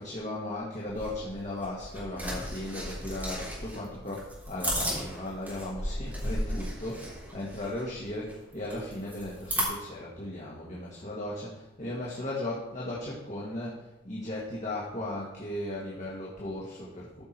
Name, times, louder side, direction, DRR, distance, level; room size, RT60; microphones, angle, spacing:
voice 1, 0.0-17.2, left 1 dB, 40° left, -5 dB, 1.8 m, -36 dB
sound 1, 0.9-9.6, equal, 10° right, 3.4 m, -35 dB
13.5 x 6.1 x 4.4 m, 0.94 s
head